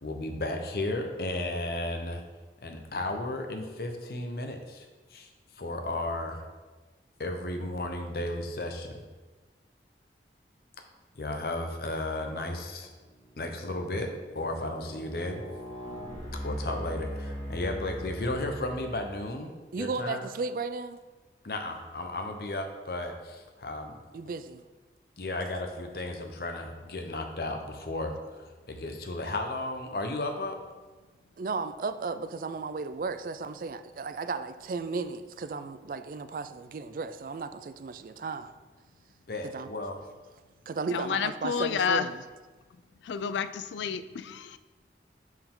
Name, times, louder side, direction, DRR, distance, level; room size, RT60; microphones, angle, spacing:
voice 1, 0.0-2.2 2.6-4.9 5.1-5.3 5.6-6.4 7.2-9.0 11.1-12.9 13.4-14.1 14.3-15.4 16.4-19.5 19.8-20.2 21.4-24.0 25.2-30.6 39.3-40.0, left 2 dB, 60° left, 4 dB, 0.8 m, -34 dB
sound 1, 12.7-19.4, equal, 35° left, 1.6 m, -41 dB
voice 2, 19.7-21.0 24.1-24.6 31.4-38.5 39.4-39.7 40.7-42.2, right 4 dB, 50° right, 12 dB, 0.3 m, -35 dB
voice 3, 40.9-42.1 43.0-44.6, left 6 dB, 90° left, 13 dB, 0.3 m, -30 dB
7.7 x 4.6 x 3.7 m, 1.3 s
head